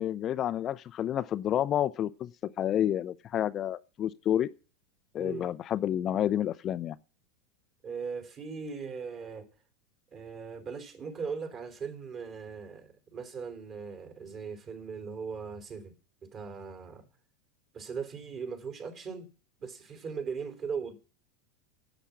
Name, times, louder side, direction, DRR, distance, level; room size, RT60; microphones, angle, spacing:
voice 1, 0.0-2.3 2.6-4.5 5.1-7.0, left 11 dB, 40° left, 0.5 m, -29 dB
voice 2, 5.2-5.5 7.8-9.5 10.1-15.9 16.2-17.1 17.7-19.3 19.6-21.0, right 5 dB, 35° right, 3.5 m, -39 dB
10.0 x 8.0 x 8.4 m
hypercardioid pair, 100°, 0 cm